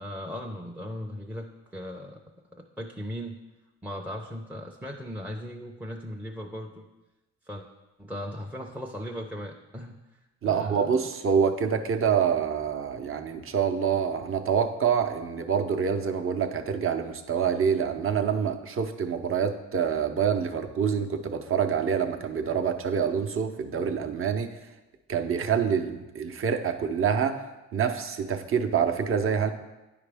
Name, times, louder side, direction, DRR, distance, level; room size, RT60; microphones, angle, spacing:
voice 1, 0.0-2.2 2.5-3.4 3.8-6.9 7.5-7.6 8.0-10.0 10.4-11.1, equal, 5° right, 0 dB, 0.5 m, -38 dB
voice 2, 10.4-24.6 25.1-27.4 27.7-29.5, right 7 dB, 45° right, 5 dB, 0.7 m, -26 dB
9.9 x 4.9 x 3.4 m, 1.1 s
cardioid pair, 90°, 30 cm